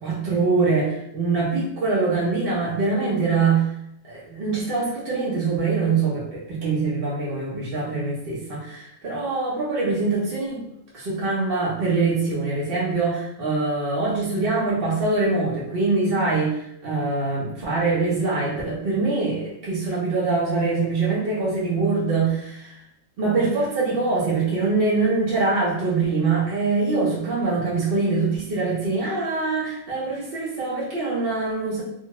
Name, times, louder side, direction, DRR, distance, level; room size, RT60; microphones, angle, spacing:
voice 1, 0.0-3.7 4.1-10.6 10.9-22.8 23.2-31.8, right 3 dB, 50° right, -6 dB, 0.9 m, -23 dB
2.6 x 2.5 x 2.9 m, 0.76 s
omnidirectional pair, 1.4 m